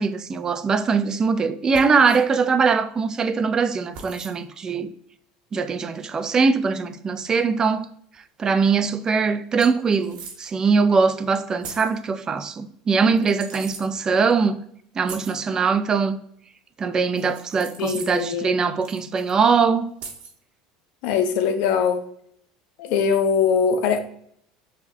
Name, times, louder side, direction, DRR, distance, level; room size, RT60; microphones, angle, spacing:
voice 1, 0.0-4.9 5.5-7.9 8.4-14.6 15.0-16.2 16.8-19.9, right 5 dB, 30° right, 0.4 m, -21 dB
sound 1, 1.7-2.2 3.9-4.4 6.4-6.5 8.7-8.8 9.1-9.2 9.6-10.5 11.6-12.0 13.1-13.9 15.0-15.4 17.1-18.3 18.8-19.4 20.0-20.4, right 5 dB, 60° right, 0.9 m, -40 dB
voice 2, 17.8-18.6 21.0-22.0 22.8-24.0, left 6 dB, 65° left, 0.5 m, -21 dB
6.3 x 2.2 x 2.7 m
hypercardioid pair, 85°, 2 cm